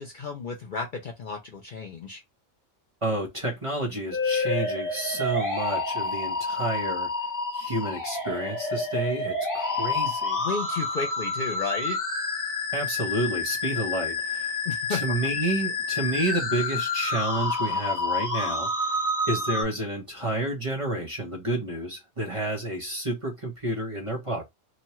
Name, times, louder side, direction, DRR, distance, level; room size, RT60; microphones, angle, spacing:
voice 1, 0.0-2.2 10.4-12.0 14.6-15.1, left 4 dB, 55° left, 0.6 m, -33 dB
voice 2, 3.0-7.1 7.5-10.4 12.7-14.6 14.9-19.0 19.3-24.5, right 1 dB, 30° right, 0.7 m, -30 dB
sound 1, 4.1-19.6, left 3 dB, 20° left, 0.7 m, -29 dB
3.0 x 2.2 x 2.8 m
omnidirectional pair, 1.2 m